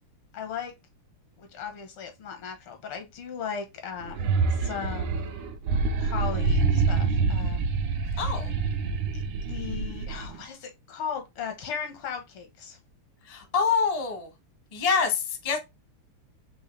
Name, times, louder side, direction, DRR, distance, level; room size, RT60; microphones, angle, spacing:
voice 1, 0.3-0.7 1.4-5.3 6.0-7.7 9.1-12.8, left 7 dB, 85° left, 2.0 m, -37 dB
sound 1, 4.0-10.4, right 4 dB, 80° right, 1.7 m, -26 dB
voice 2, 8.2-8.5 13.2-14.3 14.7-15.6, left 5 dB, 35° left, 0.6 m, -26 dB
5.4 x 2.9 x 3.2 m
omnidirectional pair, 2.4 m